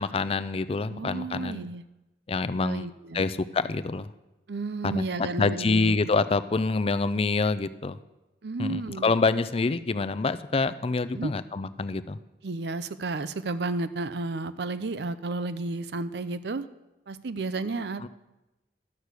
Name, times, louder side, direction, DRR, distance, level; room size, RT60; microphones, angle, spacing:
voice 1, 0.0-1.7 2.3-2.9 3.1-4.1 4.8-8.0 8.6-12.2, left 3 dB, 35° left, 13 dB, 0.4 m, -26 dB
voice 2, 0.9-1.8 2.6-3.2 4.5-6.0 8.4-9.1 11.1-11.3 12.4-16.7 17.1-18.1, right 3 dB, 65° right, 14 dB, 0.6 m, -32 dB
12.0 x 6.4 x 8.1 m, 0.99 s
head